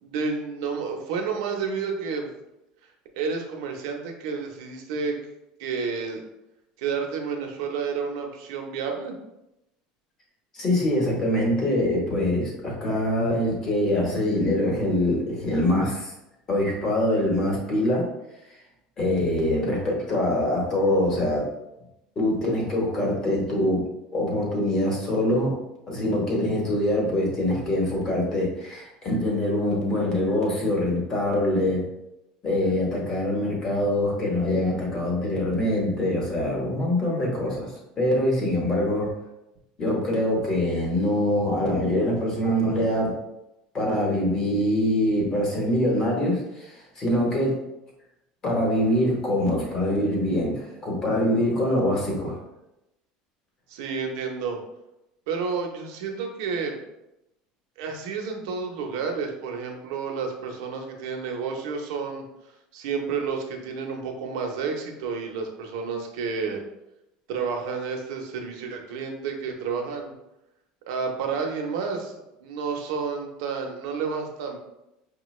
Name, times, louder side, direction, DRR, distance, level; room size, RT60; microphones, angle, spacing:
voice 1, 0.0-2.4 3.1-5.2 5.6-6.2 6.8-9.2 53.7-54.6 55.3-56.8 57.8-62.2 62.7-66.6 67.3-70.1 70.9-74.6, right 5 dB, 75° right, 3 dB, 0.7 m, -30 dB
voice 2, 10.5-16.1 16.5-18.0 19.0-21.4 22.2-23.8 24.1-25.6 25.9-31.8 32.4-37.7 38.0-39.1 39.8-43.1 43.7-47.6 48.4-52.4, left 1 dB, 25° left, -2 dB, 1.0 m, -24 dB
5.5 x 2.2 x 3.1 m, 0.90 s
cardioid pair, 180°, 3 cm